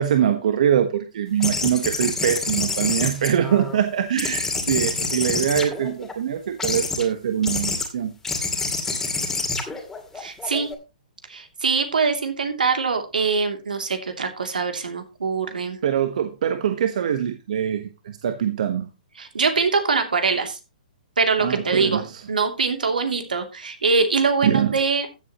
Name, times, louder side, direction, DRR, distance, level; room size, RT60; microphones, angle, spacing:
voice 1, 0.0-8.1 15.8-18.9 21.4-22.2 24.4-24.7, right 9 dB, 60° right, 8 dB, 1.3 m, -23 dB
sound 1, 1.4-3.8 4.2-6.1 6.6-7.0 7.4-7.9 8.2-10.7, left 3 dB, 10° left, 2.3 m, -27 dB
voice 2, 10.1-10.7 11.3-15.8 19.2-20.6 21.2-25.1, right 4 dB, 85° right, 5 dB, 2.8 m, -23 dB
15.0 x 8.1 x 3.0 m, 0.28 s
hypercardioid pair, 140°, 4 cm